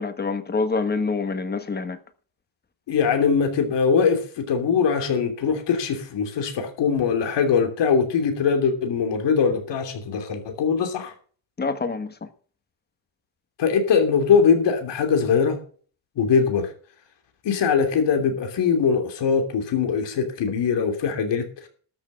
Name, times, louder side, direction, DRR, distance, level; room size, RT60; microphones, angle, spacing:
voice 1, 0.0-2.0 11.6-12.1, left 4 dB, 20° left, 1.3 m, -26 dB
voice 2, 2.9-11.1 13.6-15.6 16.2-16.7 17.4-21.7, left 6 dB, 65° left, 3.0 m, -22 dB
13.0 x 6.7 x 7.4 m
cardioid pair, 160°, 45 cm